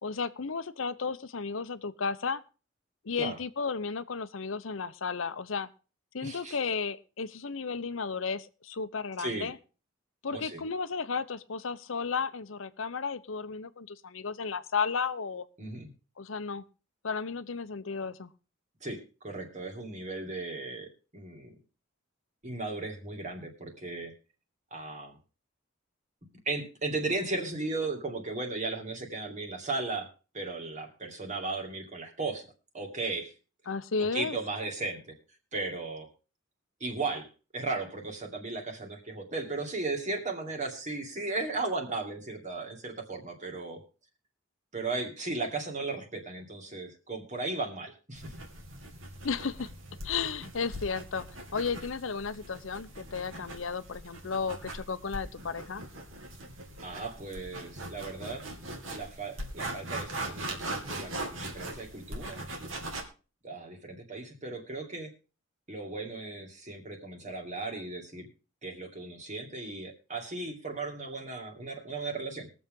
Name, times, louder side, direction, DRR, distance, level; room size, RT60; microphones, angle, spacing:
voice 1, 0.0-2.4 3.0-5.7 6.1-9.6 10.2-15.4 16.2-16.6 17.0-18.3 33.7-34.4 49.2-49.7 50.0-51.2 51.5-55.8, left 5 dB, 80° left, 14 dB, 0.8 m, -33 dB
voice 2, 6.2-6.6 9.2-9.5 10.3-10.6 15.6-15.9 18.8-21.5 22.4-24.1 24.7-25.2 26.5-30.1 30.3-32.5 32.7-33.3 34.1-35.1 35.5-36.1 36.8-37.3 37.5-43.8 44.7-48.3 56.8-58.4 58.9-61.1 61.4-62.4 63.4-65.1 65.7-68.3 68.6-72.5, right 3 dB, 40° right, 3 dB, 2.4 m, -36 dB
sound 1, 48.1-63.0, right 1 dB, 80° right, 2.4 m, -41 dB
21.5 x 7.2 x 3.7 m, 0.34 s
head